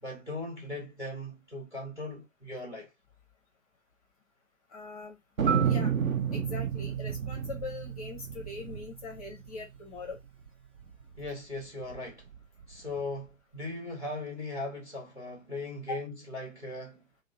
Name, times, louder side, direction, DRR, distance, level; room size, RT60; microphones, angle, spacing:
voice 1, 0.0-2.9 11.2-12.3 12.7-17.1, left 2 dB, 5° right, 0.7 m, -39 dB
voice 2, 4.7-5.2 5.6-5.9 6.3-10.2 15.9-16.0, left 3 dB, 30° left, 0.6 m, -41 dB
Thunder, 5.4-10.2 10.5-10.6 10.8-11.3 11.8-13.0, right 5 dB, 75° right, 0.7 m, -34 dB
Marimba xylophone, 5.5-9.3, right 10 dB, 40° right, 0.7 m, -33 dB
2.7 x 2.0 x 3.9 m
figure-of-eight pair, 125°, 41 cm